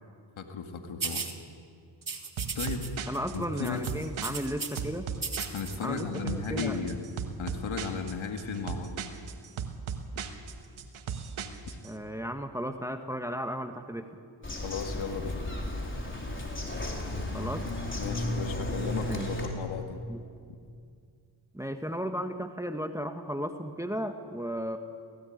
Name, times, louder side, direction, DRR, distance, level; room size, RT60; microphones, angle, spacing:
voice 1, 0.4-1.3 2.5-2.8 3.3-3.8 5.5-7.1 7.4-8.9 11.7-11.8 14.6-15.4 18.0-20.0, left 5 dB, 70° left, 4 dB, 2.2 m, -35 dB
sound 1, 1.0-1.3 2.0-2.9 3.1-3.4 3.6-4.8 5.2-5.8, right 5 dB, 40° right, 2.2 m, -35 dB
sound 2, 2.4-11.9, right 6 dB, 75° right, 1.5 m, -37 dB
voice 2, 3.1-5.1 5.8-6.8 11.8-14.1 17.3-17.7 19.0-19.3 20.1-20.2 21.5-24.8, equal, 5° right, 6 dB, 1.4 m, -34 dB
Bird vocalization bird call bird song, 14.4-19.5, left 1 dB, 25° left, 4.4 m, -34 dB
17.0 x 17.0 x 9.4 m, 2.2 s
supercardioid pair, 50°, 49 cm